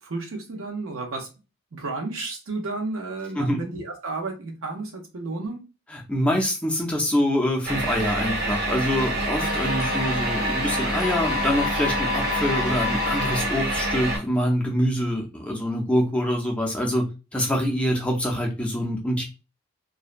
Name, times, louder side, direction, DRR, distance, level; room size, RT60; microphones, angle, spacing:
voice 1, 0.0-1.3 1.7-5.6 10.1-10.3, right 3 dB, 80° right, 2 dB, 0.8 m, -32 dB
voice 2, 5.9-19.2, equal, 5° left, -1 dB, 0.4 m, -25 dB
sound 1, 7.6-14.2, right 1 dB, 45° right, 0.7 m, -27 dB
sound 2, 9.4-13.7, left 7 dB, 70° left, 0.4 m, -31 dB
2.6 x 2.1 x 2.4 m, 0.29 s
head